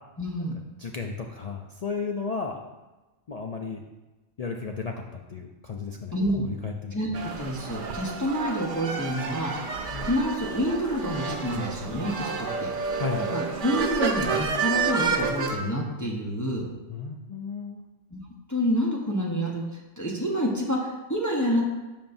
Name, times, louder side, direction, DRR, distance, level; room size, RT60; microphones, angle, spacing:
voice 1, 0.2-0.6 6.1-6.5 6.9-9.7 10.0-12.7 13.3-16.7 18.1-18.2 18.5-19.6 20.0-21.6, equal, 15° left, -3 dB, 0.9 m, -28 dB
voice 2, 0.8-2.6 3.3-3.8 4.4-6.9 9.9-10.1 12.9-13.2 16.9-17.8, left 5 dB, 60° left, 2 dB, 0.4 m, -34 dB
sound 1, 7.1-15.6, right 5 dB, 50° right, 0.7 m, -30 dB
12.5 x 5.3 x 2.6 m, 1.1 s
omnidirectional pair, 1.3 m